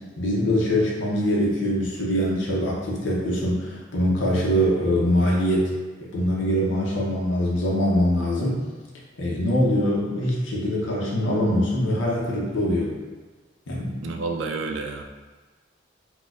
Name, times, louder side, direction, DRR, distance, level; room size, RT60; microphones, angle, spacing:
voice 1, 0.2-5.7 6.0-8.7 9.2-13.0 13.7-14.2, equal, 75° left, -3 dB, 0.6 m, -23 dB
voice 2, 14.0-15.0, right 4 dB, 75° right, 4 dB, 0.4 m, -29 dB
4.2 x 2.2 x 2.3 m, 1.3 s
head